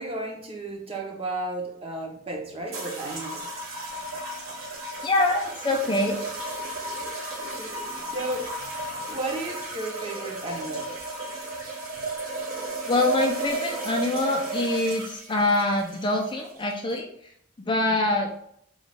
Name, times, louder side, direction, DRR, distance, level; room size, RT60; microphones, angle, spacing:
voice 1, 0.0-3.5 7.4-8.7 9.0-10.9 17.7-18.0, right 2 dB, 30° right, 0 dB, 0.7 m, -34 dB
sound 1, 2.7-17.0, right 2 dB, 80° right, 1.5 m, -34 dB
voice 2, 5.0-6.2 12.9-17.1 17.6-18.3, left 2 dB, 25° left, 1 dB, 0.4 m, -24 dB
3.8 x 2.3 x 3.3 m, 0.69 s
head